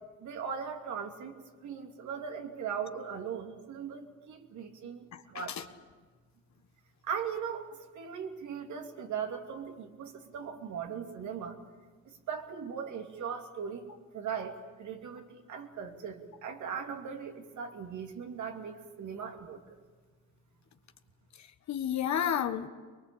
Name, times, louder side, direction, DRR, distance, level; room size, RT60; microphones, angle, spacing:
voice 1, 0.2-5.6 7.0-7.7 7.9-11.7 12.1-13.8 14.1-19.6, right 7 dB, 75° right, 4 dB, 2.8 m, -39 dB
voice 2, 5.1-5.6 21.4-22.7, left 9 dB, 65° left, 8 dB, 1.5 m, -32 dB
23.5 x 21.5 x 8.7 m, 1.5 s
cardioid pair, 90°, 30 cm